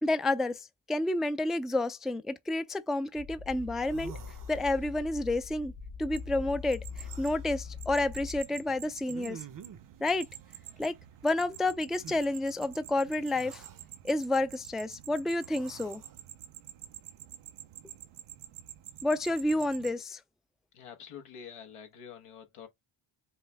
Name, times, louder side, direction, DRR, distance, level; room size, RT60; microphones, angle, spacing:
voice 1, 0.0-4.1 4.5-5.7 6.0-9.4 10.0-10.3 10.8-10.9 11.2-13.6 14.0-16.0 19.0-20.2, left 2 dB, ahead, 0.3 m, -30 dB
sound 1, 3.2-8.4, left 6 dB, 65° left, 2.7 m, -42 dB
sound 2, 3.5-3.6 3.8-5.1 6.9-7.5 9.1-9.9 12.0-12.3 13.2-13.8 15.4-16.2, right 8 dB, 40° right, 0.7 m, -49 dB
sound 3, 6.1-19.9, right 12 dB, 90° right, 0.7 m, -48 dB
voice 2, 20.7-22.7, left 7 dB, 85° left, 1.1 m, -47 dB
5.5 x 2.2 x 3.3 m
cardioid pair, 55°, 50 cm